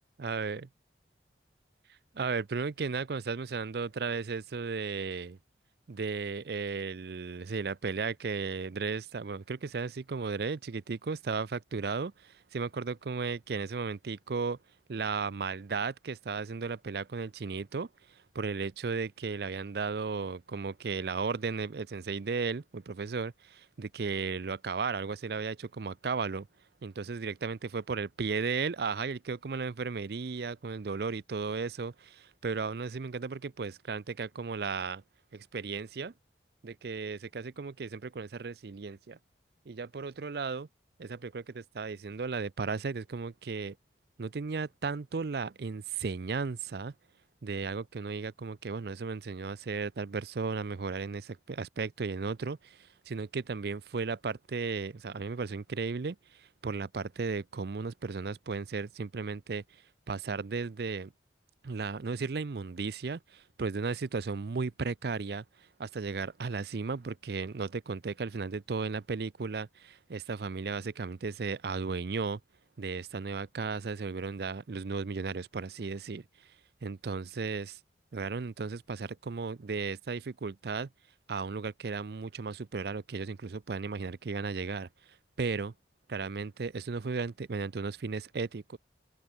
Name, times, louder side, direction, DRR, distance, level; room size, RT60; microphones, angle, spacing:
voice 1, 0.2-0.7 2.1-5.4 5.9-14.6 14.9-26.5 26.8-35.0 35.3-36.1 36.6-39.2 39.7-40.7 41.0-43.8 44.2-46.9 47.4-59.8 60.1-61.1 61.6-72.4 72.8-76.2 76.8-77.8 78.1-80.9 81.3-84.9 85.4-85.7 86.1-88.8, right 4 dB, 60° right, 0.5 m, -35 dB
open air
head